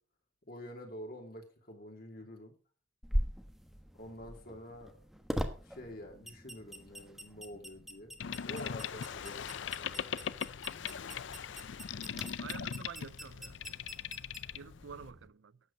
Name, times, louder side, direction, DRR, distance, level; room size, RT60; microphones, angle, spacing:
voice 1, 0.5-2.5 3.9-5.0 5.6-8.1 8.5-10.3, equal, 55° left, 3.1 m, -48 dB
sound 1, 3.0-15.3, equal, ahead, 1.2 m, -42 dB
Boat Water vehicle, 8.2-15.1, left 8 dB, 85° left, 0.5 m, -40 dB
voice 2, 12.4-13.6 14.5-15.6, right 6 dB, 90° right, 0.5 m, -48 dB
12.0 x 8.0 x 5.2 m
head